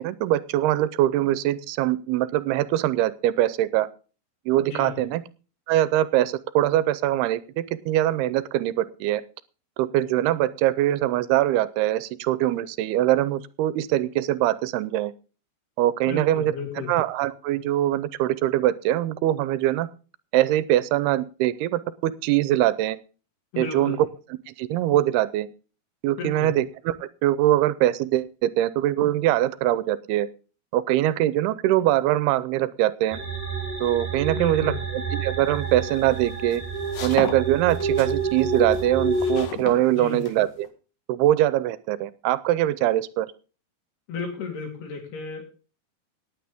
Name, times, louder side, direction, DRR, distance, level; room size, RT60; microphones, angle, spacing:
voice 1, 0.0-3.9 4.5-5.2 5.7-9.2 9.8-15.1 15.8-16.5 16.9-19.9 20.3-23.0 23.6-24.1 24.6-25.5 26.0-30.3 30.7-33.2 33.8-36.6 37.0-40.7 41.1-43.3, right 14 dB, 80° right, 17 dB, 2.6 m, -23 dB
voice 2, 4.6-5.1 16.0-16.9 23.5-24.0 26.2-26.6 34.4-34.8 39.9-40.2 44.1-45.5, left 5 dB, 75° left, 3 dB, 5.4 m, -34 dB
sound 1, 33.1-39.4, right 3 dB, 5° left, 3.7 m, -29 dB
sound 2, 35.6-40.7, left 6 dB, 55° left, 2.8 m, -37 dB
18.5 x 9.1 x 3.5 m, 0.36 s
omnidirectional pair, 4.6 m